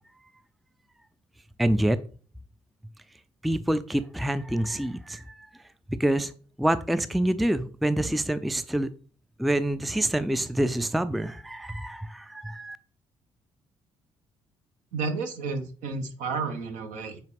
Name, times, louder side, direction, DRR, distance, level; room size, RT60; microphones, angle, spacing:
voice 1, 1.6-2.0 3.4-5.5 6.0-6.3 6.6-8.9 9.4-12.8, right 1 dB, ahead, 13 dB, 0.4 m, -26 dB
voice 2, 14.9-17.2, right 4 dB, 65° right, 6 dB, 0.9 m, -31 dB
8.1 x 4.3 x 3.1 m, 0.40 s
figure-of-eight pair, 40°, 14 cm